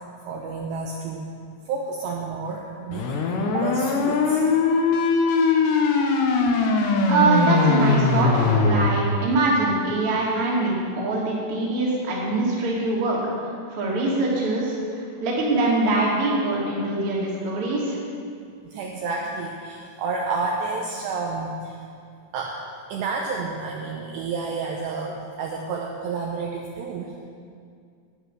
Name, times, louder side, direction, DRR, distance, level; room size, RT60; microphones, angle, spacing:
voice 1, 0.3-1.3 1.7-4.4 18.6-21.8 22.3-22.6 22.9-27.2, right 4 dB, 75° right, -1 dB, 2.7 m, -30 dB
sound 1, 2.9-8.9, left 4 dB, 75° left, 2.9 m, -21 dB
voice 2, 7.1-13.3 13.7-18.0, right 2 dB, 40° right, -4 dB, 2.2 m, -23 dB
11.5 x 9.8 x 6.2 m, 2.3 s
omnidirectional pair, 5.6 m